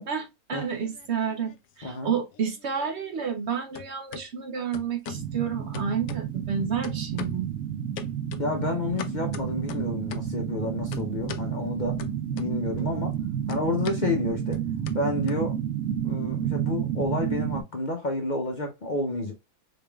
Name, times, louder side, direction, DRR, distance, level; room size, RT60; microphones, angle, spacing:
voice 1, 0.0-7.5, right 7 dB, 60° right, 0.8 m, -30 dB
sound 1, 0.6-1.6 1.9-3.5 3.7-4.3 4.7-5.3 5.7-6.5 6.8-7.5 8.0-10.4 10.9-11.5 12.0-12.8 13.1-15.9, left 9 dB, 75° left, 1.0 m, -41 dB
voice 2, 1.8-2.1 8.4-12.0 12.3-13.2 13.5-14.6 14.9-15.5 16.0-19.3, left 2 dB, 40° left, 0.8 m, -30 dB
sound 2, 5.1-17.6, right 9 dB, 85° right, 1.4 m, -31 dB
3.9 x 3.5 x 2.3 m
omnidirectional pair, 1.5 m